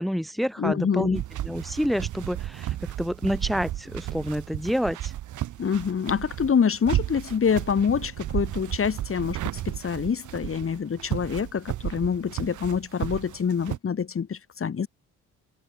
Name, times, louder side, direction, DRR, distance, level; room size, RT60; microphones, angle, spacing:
voice 1, 0.0-5.1, equal, ahead, 3.0 m, -28 dB
voice 2, 0.6-1.2 5.6-14.9, left 6 dB, 45° left, 7.7 m, -26 dB
sound 1, 1.2-13.8, right 13 dB, 80° right, 3.0 m, -33 dB
cardioid pair, 90°, 30 cm